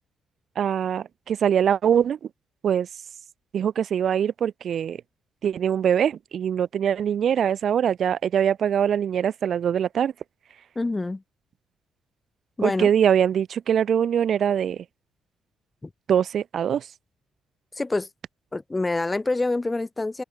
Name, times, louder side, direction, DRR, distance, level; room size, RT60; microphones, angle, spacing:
voice 1, 0.6-2.2 2.6-2.9 3.5-5.0 5.4-10.1 12.6-14.8 16.1-16.8, right 8 dB, 60° right, 2.8 m, -23 dB
voice 2, 10.8-11.2 12.6-12.9 17.8-18.1 18.5-20.2, left 2 dB, 20° left, 3.9 m, -26 dB
open air
cardioid pair, 90°, 0 cm